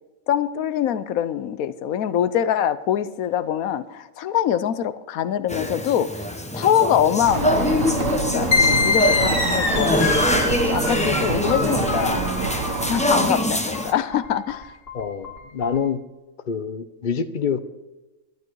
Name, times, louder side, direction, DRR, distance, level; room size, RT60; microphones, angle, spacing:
voice 1, 0.3-6.1 6.5-12.2 12.9-14.7, left 9 dB, 85° left, 14 dB, 1.2 m, -24 dB
sound 1, 5.5-13.9, left 1 dB, 5° left, 0.7 m, -24 dB
sound 2, 7.2-13.1, right 4 dB, 70° right, 1.8 m, -27 dB
sound 3, 8.5-15.8, left 4 dB, 60° left, 2.7 m, -25 dB
voice 2, 14.9-16.0 16.5-17.6, left 6 dB, 45° left, 12 dB, 0.7 m, -26 dB
12.0 x 12.0 x 4.6 m, 1.1 s
omnidirectional pair, 1.4 m